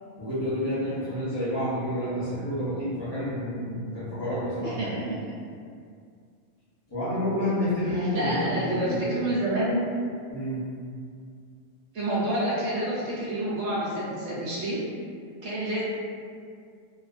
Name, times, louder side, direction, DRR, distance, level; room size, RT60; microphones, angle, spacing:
voice 1, 0.2-4.9 6.9-9.0 10.3-10.7, equal, 25° left, -11 dB, 0.7 m, -29 dB
voice 2, 4.6-5.2 7.5-9.8 11.9-14.8 15.4-15.8, right 1 dB, 90° right, -8 dB, 1.0 m, -28 dB
2.4 x 2.3 x 2.4 m, 2.2 s
omnidirectional pair, 1.3 m